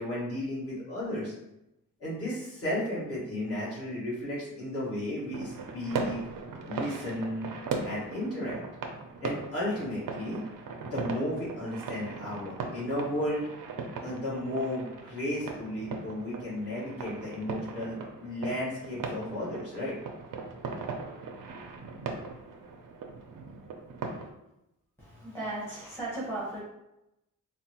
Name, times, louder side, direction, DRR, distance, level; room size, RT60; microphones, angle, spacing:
voice 1, 0.0-1.3 2.0-6.2 6.6-7.5 7.8-8.6 9.2-10.4 10.8-13.5 14.0-20.0, left 1 dB, 45° left, -8 dB, 1.5 m, -34 dB
sound 1, 5.3-24.3, right 4 dB, 80° right, 0.5 m, -39 dB
voice 2, 25.0-26.6, right 2 dB, 5° left, -8 dB, 1.0 m, -36 dB
3.9 x 2.0 x 2.9 m, 0.88 s
wide cardioid pair, 140°, 32 cm